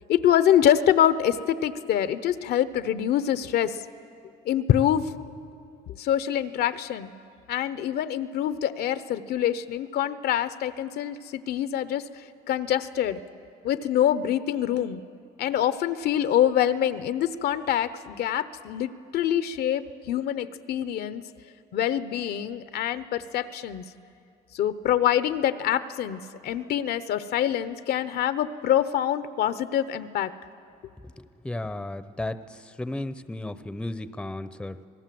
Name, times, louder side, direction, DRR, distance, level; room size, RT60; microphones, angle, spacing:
voice 1, 0.1-3.8 4.4-5.1 5.9-7.1 7.5-12.0 12.5-13.2 13.6-15.0 15.4-21.2 21.7-23.8 24.5-30.3, left 10 dB, 70° left, 13 dB, 0.9 m, -25 dB
voice 2, 31.4-32.4 32.8-34.8, left 2 dB, 5° left, 13 dB, 0.7 m, -33 dB
26.5 x 18.5 x 7.7 m, 2.5 s
cardioid pair, 110°, 17 cm